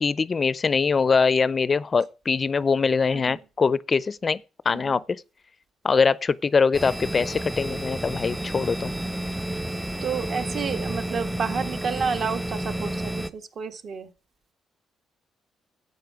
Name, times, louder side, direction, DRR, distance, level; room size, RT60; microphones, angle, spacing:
voice 1, 0.0-4.4 4.7-5.0 5.8-8.9, left 5 dB, 35° left, 0.4 m, -23 dB
voice 2, 4.7-5.0 10.0-14.1, right 6 dB, 55° right, 1.5 m, -30 dB
sound 1, 6.7-13.3, right 1 dB, 10° right, 0.7 m, -31 dB
12.0 x 8.3 x 4.7 m
cardioid pair, 90°, 0 cm